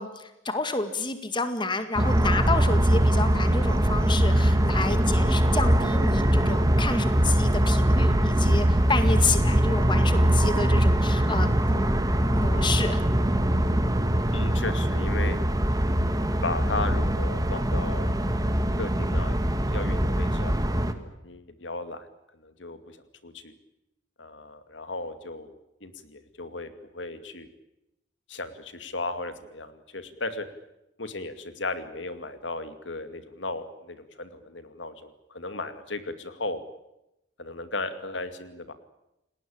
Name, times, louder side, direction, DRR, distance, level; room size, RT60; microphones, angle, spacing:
voice 1, 0.0-13.0, left 3 dB, 25° left, 9 dB, 2.0 m, -30 dB
sound 1, 2.0-20.9, right 1 dB, 20° right, 1.8 m, -22 dB
voice 2, 14.3-15.4 16.4-18.1 18.8-22.1 22.3-23.0 23.2-23.5 24.2-27.5 28.3-30.5 31.0-36.6 37.4-38.7, left 3 dB, 70° left, 10 dB, 2.4 m, -36 dB
29.5 x 19.0 x 8.8 m, 0.90 s
head